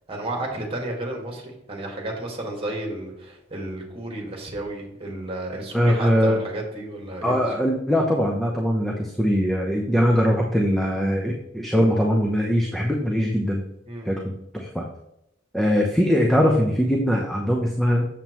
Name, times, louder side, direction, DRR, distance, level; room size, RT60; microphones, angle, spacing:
voice 1, 0.1-7.5 13.9-14.1, right 1 dB, 30° right, 0 dB, 1.8 m, -32 dB
voice 2, 5.7-6.4 7.2-13.6 14.1-14.9 15.5-18.0, equal, ahead, -1 dB, 0.7 m, -21 dB
7.3 x 7.3 x 3.1 m, 0.81 s
head